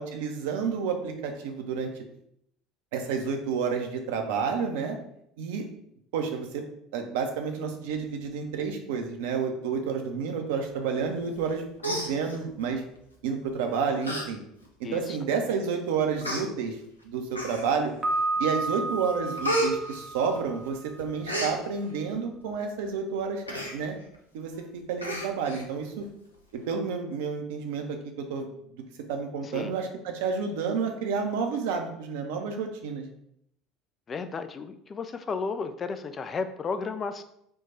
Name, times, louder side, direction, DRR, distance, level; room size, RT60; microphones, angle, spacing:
voice 1, 0.0-1.9 2.9-5.0 5.4-5.6 6.1-6.6 6.9-12.8 13.2-14.4 14.8-16.8 17.0-17.9 18.4-23.4 23.7-24.0 24.3-26.0 26.5-28.5 29.1-33.0, right 5 dB, 60° right, 4 dB, 0.6 m, -30 dB
Human voice, 11.3-11.5 11.8-12.7 13.5-13.6 14.0-14.3 14.6-14.7 15.5-15.6 16.2-16.4 17.3-17.9 18.4-18.7 19.0-20.7 21.0-21.5 23.5-23.8 24.1-24.2 24.5-24.6 25.0-25.6 26.0-26.1, right 1 dB, 85° left, 0.5 m, -31 dB
voice 2, 14.8-15.2 29.4-29.7 34.1-37.2, left 4 dB, 30° left, 10 dB, 0.3 m, -33 dB
Piano, 18.0-20.9, right 2 dB, 15° right, 0.6 m, -31 dB
4.4 x 2.2 x 4.2 m, 0.73 s
figure-of-eight pair, 65°, 0 cm